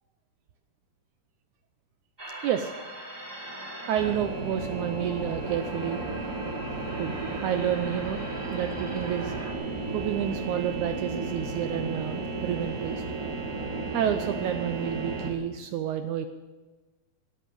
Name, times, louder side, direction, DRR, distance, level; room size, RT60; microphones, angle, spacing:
sound 1, 2.2-9.5, right 1 dB, 10° right, 1.8 m, -40 dB
sound 2, 3.9-15.3, right 3 dB, 25° right, 2.3 m, -34 dB
voice 1, 3.9-6.0 7.0-8.3 8.5-9.4 9.9-13.0 13.9-16.3, right 10 dB, 85° right, 7 dB, 1.7 m, -30 dB
18.0 x 8.4 x 8.5 m, 1.2 s
omnidirectional pair, 4.3 m